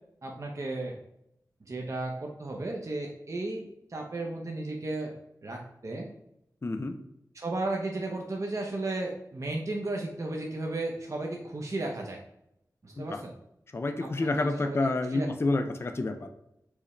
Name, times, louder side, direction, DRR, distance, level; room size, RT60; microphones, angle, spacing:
voice 1, 0.2-1.0 1.7-5.1 5.4-6.1 7.3-12.2 12.8-13.3 14.0-14.8 15.1-15.3, right 2 dB, 45° right, 0 dB, 0.6 m, -34 dB
voice 2, 6.6-7.0 13.0-13.2 13.7-16.3, left 2 dB, 35° left, 6 dB, 0.4 m, -29 dB
4.7 x 2.1 x 3.0 m, 0.80 s
cardioid pair, 50°, 7 cm